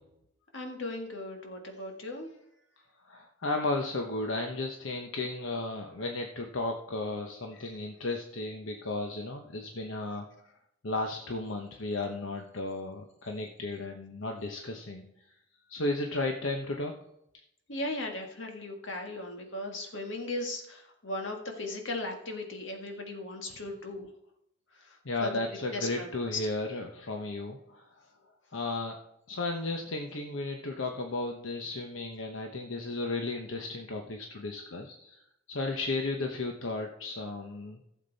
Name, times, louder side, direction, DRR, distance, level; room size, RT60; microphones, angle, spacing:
voice 1, 0.5-2.3 7.5-7.7 17.7-24.1 24.8-25.3 25.7-26.4, left 2 dB, 70° left, 3 dB, 1.8 m, -37 dB
voice 2, 3.1-10.3 10.8-15.0 15.7-16.9 23.5-23.6 25.0-27.8 28.5-29.0 29.3-35.2 35.5-37.8, left 2 dB, 90° left, 3 dB, 1.0 m, -34 dB
15.0 x 7.4 x 4.1 m, 0.80 s
head